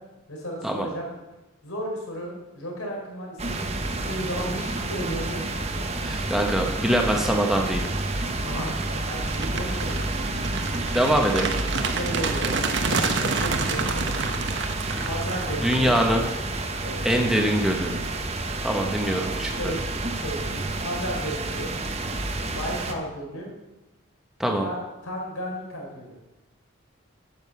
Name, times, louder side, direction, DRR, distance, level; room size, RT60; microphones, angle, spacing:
voice 1, 0.3-1.1 1.6-3.7 3.9-5.9 8.4-8.8 9.0-10.4 11.9-14.4 15.0-15.9 16.8-17.0 19.6-19.8 20.1-21.7 22.5-23.5 24.6-26.2, equal, 80° left, -1 dB, 3.8 m, -34 dB
sound 1, 3.4-22.9, right 2 dB, 30° right, 0.9 m, -30 dB
sound 2, 5.8-5.9 6.3-16.4, right 4 dB, 55° right, 1.0 m, -30 dB
voice 2, 6.0-7.9 10.7-11.5 15.6-16.2 17.0-17.9 18.6-19.7 24.4-24.7, equal, ahead, 1 dB, 1.0 m, -23 dB
9.5 x 7.6 x 6.9 m, 1.0 s
head